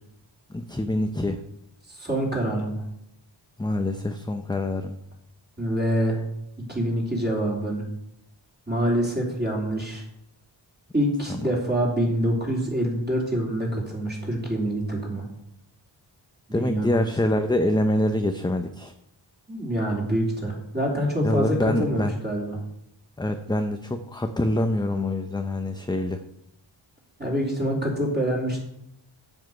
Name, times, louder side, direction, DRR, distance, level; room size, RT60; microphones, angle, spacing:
voice 1, 0.5-1.4 3.6-5.0 11.3-11.5 16.5-18.9 21.2-22.1 23.2-26.2, left 1 dB, 10° left, 6 dB, 0.6 m, -25 dB
voice 2, 1.9-2.8 5.6-6.2 6.7-7.8 8.7-10.0 10.9-15.3 16.5-16.9 19.5-22.6 27.2-28.6, right 1 dB, 20° right, -3 dB, 3.1 m, -26 dB
7.9 x 7.3 x 6.7 m, 0.78 s
wide cardioid pair, 95°, 46 cm